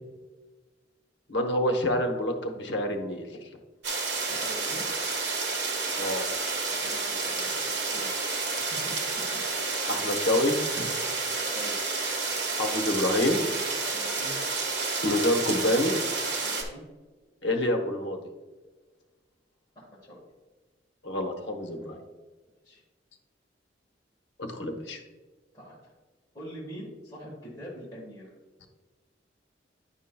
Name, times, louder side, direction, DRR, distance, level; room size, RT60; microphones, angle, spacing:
voice 1, 1.3-3.5 6.0-6.3 9.9-10.9 12.6-13.4 15.0-15.9 17.4-18.2 21.0-22.0 24.4-25.0, left 1 dB, 70° left, 4 dB, 1.0 m, -27 dB
sound 1, 3.8-16.6, right 4 dB, 80° right, 1.4 m, -30 dB
voice 2, 4.2-4.9 6.6-8.8 11.1-11.9 13.9-14.3 16.4-16.8 19.7-20.2 22.6-22.8 25.5-25.9 26.3-28.3, equal, 20° left, -6 dB, 1.5 m, -45 dB
10.0 x 5.5 x 2.2 m, 1.3 s
head